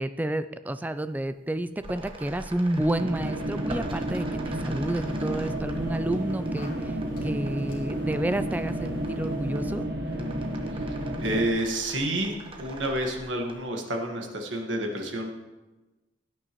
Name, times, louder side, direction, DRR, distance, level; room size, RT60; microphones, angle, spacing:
voice 1, 0.0-9.9, right 1 dB, 10° right, 12 dB, 0.3 m, -30 dB
sound 1, 1.4-1.5 1.8-9.6 10.0-13.7, right 1 dB, 30° right, 1.1 m, -43 dB
sound 2, 3.0-11.5, right 1 dB, 60° right, 1.2 m, -31 dB
sound 3, 4.8-9.8, left 1 dB, 45° left, 2.6 m, -47 dB
voice 2, 11.2-15.3, right 1 dB, 80° right, 2 dB, 1.6 m, -29 dB
16.5 x 9.3 x 3.1 m, 1.1 s
head